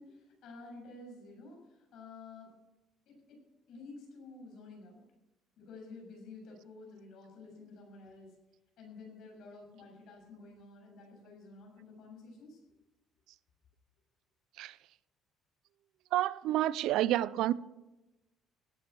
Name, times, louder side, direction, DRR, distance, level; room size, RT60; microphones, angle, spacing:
voice 1, 0.0-2.6 3.1-3.4 3.7-5.0 5.6-8.4 8.8-12.6, left 3 dB, 60° left, 7.2 m, -51 dB
voice 2, 16.1-17.5, right 13 dB, 65° right, 0.5 m, -29 dB
17.5 x 10.0 x 7.0 m
cardioid pair, 160°, 0 cm